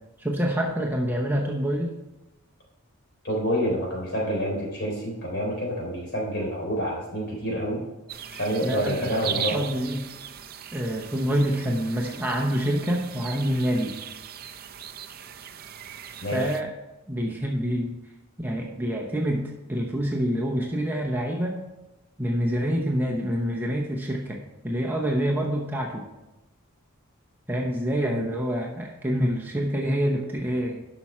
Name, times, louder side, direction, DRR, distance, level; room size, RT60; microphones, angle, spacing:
voice 1, 0.2-1.9 8.6-10.0 10.7-14.0 16.3-16.7 17.1-18.0 18.4-21.6 22.2-26.1 27.5-30.9, equal, 10° right, -1 dB, 0.8 m, -27 dB
voice 2, 3.2-7.8 8.3-9.6 16.2-16.4, equal, 50° left, -2 dB, 3.6 m, -28 dB
sound 1, 8.1-16.6, right 9 dB, 40° right, 0.5 m, -38 dB
11.5 x 6.0 x 4.4 m, 1.0 s
head